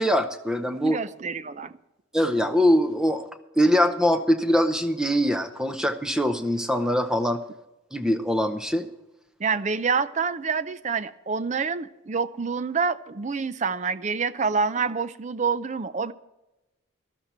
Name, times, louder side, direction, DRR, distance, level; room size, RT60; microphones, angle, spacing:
voice 1, 0.0-1.0 2.1-3.3 3.6-7.4 7.9-8.9, equal, 5° right, 8 dB, 0.8 m, -23 dB
voice 2, 0.8-1.7 9.4-16.1, right 5 dB, 35° right, 14 dB, 0.5 m, -27 dB
13.0 x 12.5 x 4.4 m, 0.97 s
head